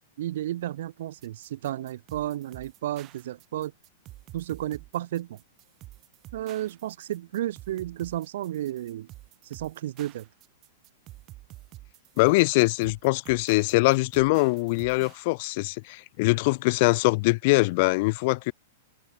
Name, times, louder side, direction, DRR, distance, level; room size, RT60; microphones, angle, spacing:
voice 1, 0.2-3.7 4.3-5.4 6.3-9.1 9.5-10.3, right 13 dB, 70° right, 1.7 m, -32 dB
sound 1, 1.2-15.2, right 17 dB, 35° right, 4.8 m, -49 dB
voice 2, 12.2-18.5, left 25 dB, 55° left, 0.6 m, -23 dB
hypercardioid pair, 130°, 0 cm